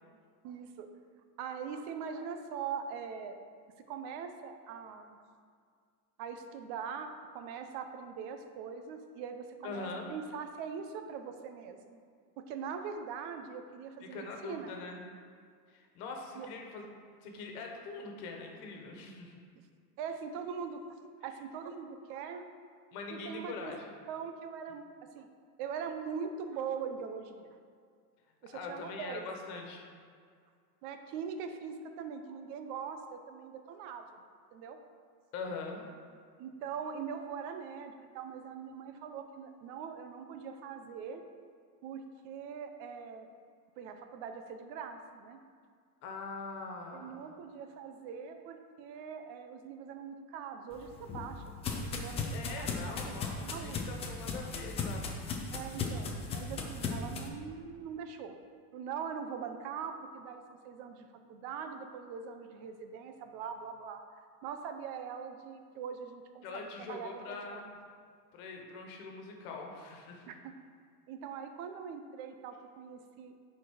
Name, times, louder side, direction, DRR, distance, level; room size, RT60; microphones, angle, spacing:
voice 1, 0.4-0.9 1.4-3.4 3.9-5.2 6.2-12.0 12.4-14.7 16.4-16.5 19.5-19.6 20.0-20.8 21.2-22.4 23.1-23.7 24.1-24.9 25.1-25.3 25.6-27.5 28.4-29.3 30.8-34.2 34.5-34.8 36.4-41.2 41.8-43.3 43.8-45.4 46.9-51.4 51.7-53.8 55.5-58.4 58.7-64.0 64.4-67.6 70.3-70.5 71.1-73.3, right 6 dB, 50° right, 7 dB, 0.8 m, -42 dB
voice 2, 9.6-10.1 14.0-15.0 15.7-16.8 17.2-19.3 22.9-23.8 28.5-29.8 35.3-35.8 46.0-47.3 52.3-55.1 66.4-67.8 68.3-70.3, left 4 dB, 65° left, 2 dB, 1.6 m, -43 dB
sound 1, 50.7-57.3, left 4 dB, 15° left, 0.4 m, -37 dB
10.5 x 4.4 x 5.0 m, 2.1 s
supercardioid pair, 155°, 46 cm